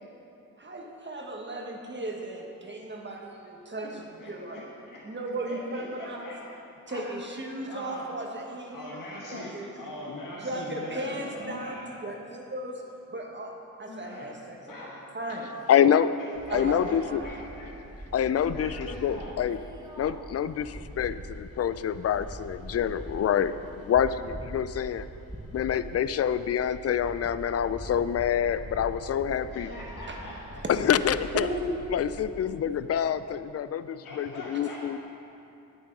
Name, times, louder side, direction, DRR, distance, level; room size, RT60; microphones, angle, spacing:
voice 1, 0.6-4.0 4.3-4.6 5.0-6.3 6.9-9.0 9.3-9.7 10.4-12.8 13.1-13.5 13.8-14.9 15.1-15.5 16.5-17.3 30.1-30.2 31.3-31.7, right 1 dB, 35° right, 1 dB, 1.5 m, -36 dB
voice 2, 3.8-5.0 5.4-6.4 6.9-7.2 7.6-8.1 8.7-11.9 13.9-14.3 14.7-15.0 16.2-17.7 18.5-19.3 29.5-30.6 34.0-34.9, left 1 dB, 70° left, -5 dB, 1.7 m, -42 dB
voice 3, 15.7-16.1 16.5-17.2 18.1-19.6 20.0-25.1 25.5-29.7 30.7-31.5 31.9-35.0, left 9 dB, 45° left, 14 dB, 0.4 m, -26 dB
sound 1, 16.3-32.6, right 1 dB, 10° right, 1.3 m, -43 dB
8.9 x 7.3 x 5.4 m, 2.8 s
cardioid pair, 60°, 33 cm